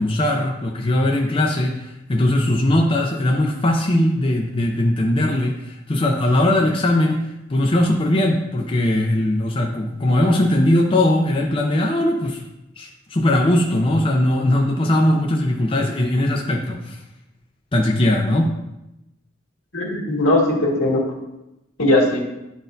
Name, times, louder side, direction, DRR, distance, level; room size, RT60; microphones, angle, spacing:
voice 1, 0.0-12.4 12.8-17.0 17.7-18.5, left 1 dB, 25° left, 0 dB, 0.5 m, -19 dB
voice 2, 19.7-21.0 21.8-22.2, left 1 dB, 85° left, -3 dB, 2.0 m, -18 dB
10.5 x 4.1 x 2.6 m, 0.93 s
head